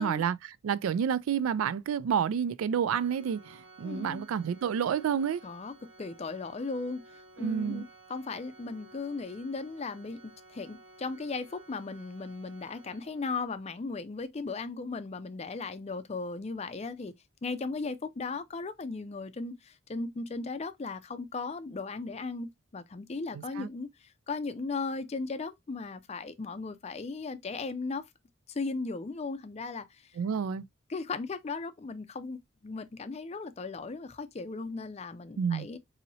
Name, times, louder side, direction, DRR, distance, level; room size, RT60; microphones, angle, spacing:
voice 1, 0.0-5.4 7.4-7.8 23.3-23.7 30.2-30.6 35.4-35.7, right 7 dB, 80° right, 0.3 m, -29 dB
Organ, 2.9-13.6, right 2 dB, 55° right, 2.9 m, -55 dB
voice 2, 3.8-4.2 5.4-7.8 8.1-10.2 10.5-17.1 17.4-28.0 28.5-30.1 30.9-35.8, left 3 dB, 30° left, 0.4 m, -37 dB
4.1 x 2.7 x 2.7 m
head